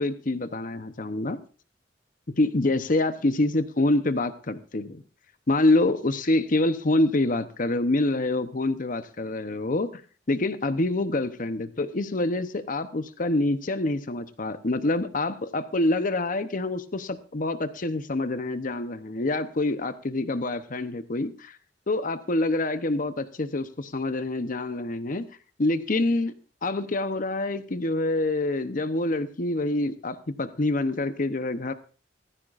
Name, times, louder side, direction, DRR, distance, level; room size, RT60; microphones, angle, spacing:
voice 1, 0.0-1.4 2.4-5.0 5.5-10.0 10.3-21.6 21.9-25.2 25.6-26.3 26.6-31.7, left 2 dB, 50° left, 11 dB, 0.8 m, -26 dB
17.0 x 14.5 x 2.5 m, 0.37 s
head